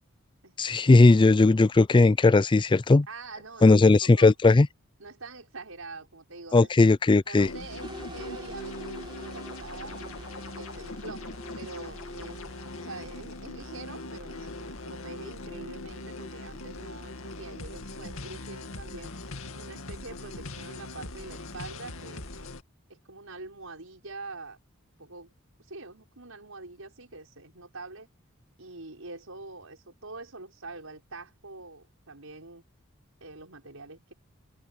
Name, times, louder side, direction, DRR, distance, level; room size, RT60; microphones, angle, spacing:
voice 1, 0.6-3.1 3.6-4.7 6.5-7.5, left 3 dB, 25° left, 0.4 m, -18 dB
voice 2, 3.1-4.3 5.0-6.8 7.3-10.1 10.6-11.3 11.5-12.4 12.8-19.1 19.5-22.3 22.9-24.6 25.0-25.3 25.6-28.1 28.6-32.6 33.2-34.1, right 3 dB, 90° right, 6.1 m, -44 dB
sound 1, 7.4-22.6, left 2 dB, 80° left, 2.3 m, -40 dB
sound 2, 7.8-14.5, right 1 dB, 25° right, 5.1 m, -48 dB
head